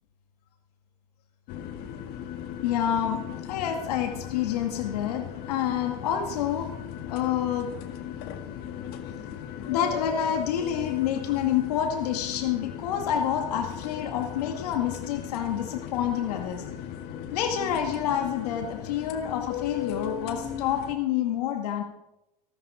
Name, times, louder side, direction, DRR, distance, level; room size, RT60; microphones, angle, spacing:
sound 1, 1.5-20.9, left 9 dB, 55° left, 1.8 m, -37 dB
voice 1, 2.6-6.7 7.1-7.7 9.6-16.6 17.3-21.8, left 9 dB, 80° left, 4 dB, 2.2 m, -28 dB
17.0 x 12.5 x 5.1 m, 0.88 s
supercardioid pair, 125°, 20 cm